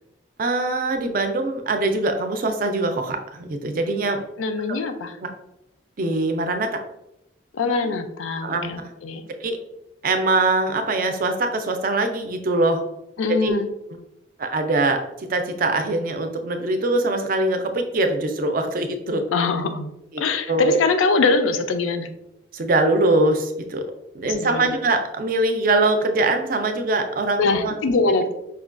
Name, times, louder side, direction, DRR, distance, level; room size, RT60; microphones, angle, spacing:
voice 1, 0.4-4.2 5.2-5.3 6.0-6.8 7.8-7.9 8.4-8.9 9.4-9.6 10.0-12.8 13.3-13.6 14.4-19.2 20.1-20.2 20.5-20.7 22.5-23.9 24.1-27.7, right 2 dB, 45° right, 6 dB, 0.4 m, -22 dB
voice 2, 4.4-5.2 7.5-9.2 13.2-13.7 19.3-19.9 20.2-22.1 24.2-24.8 27.4-28.3, left 3 dB, 85° left, 9 dB, 0.4 m, -22 dB
4.9 x 2.2 x 2.4 m, 0.87 s
head